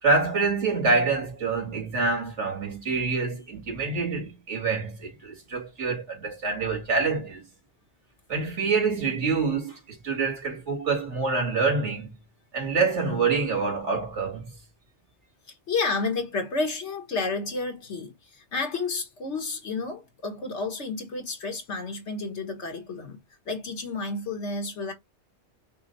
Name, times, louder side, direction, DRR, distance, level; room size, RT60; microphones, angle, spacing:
voice 1, 0.0-7.4 8.3-12.1 12.5-14.6, right 4 dB, 85° right, 2.5 m, -26 dB
voice 2, 15.7-23.2 23.4-24.9, left 3 dB, 75° left, 1.6 m, -31 dB
5.7 x 2.2 x 3.9 m
omnidirectional pair, 1.2 m